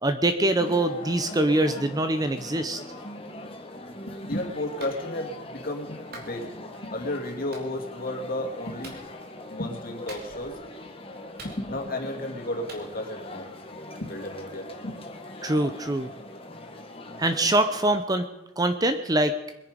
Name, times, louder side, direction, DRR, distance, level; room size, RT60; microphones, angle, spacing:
voice 1, 0.0-2.8 15.4-16.1 17.2-18.3 18.6-19.3, right 1 dB, 20° right, 8 dB, 0.7 m, -24 dB
sound 1, 0.6-17.8, left 1 dB, 30° left, 1.7 m, -42 dB
voice 2, 4.1-9.0 9.5-10.5 11.4-13.5 13.9-15.0, left 1 dB, 45° left, 2 dB, 2.6 m, -33 dB
Clapping, 4.8-5.0 6.1-6.3 7.5-7.7 8.8-9.0 10.1-10.5 11.4-11.9 12.7-12.9, right 2 dB, 50° right, 3.1 m, -43 dB
22.0 x 10.0 x 5.2 m, 0.94 s
head